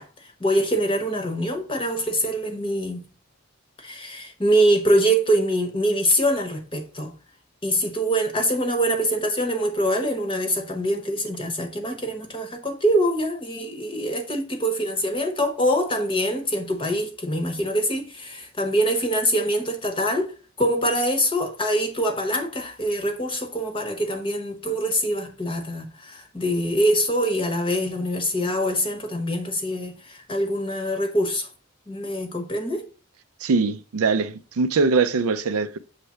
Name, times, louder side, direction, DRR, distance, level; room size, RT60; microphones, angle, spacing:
voice 1, 0.0-3.0 3.8-7.1 7.6-20.3 20.6-31.5 31.9-32.9, equal, 25° left, 0.8 m, -24 dB
voice 2, 33.4-35.8, right 4 dB, 80° right, 0.5 m, -22 dB
7.3 x 3.3 x 5.5 m
head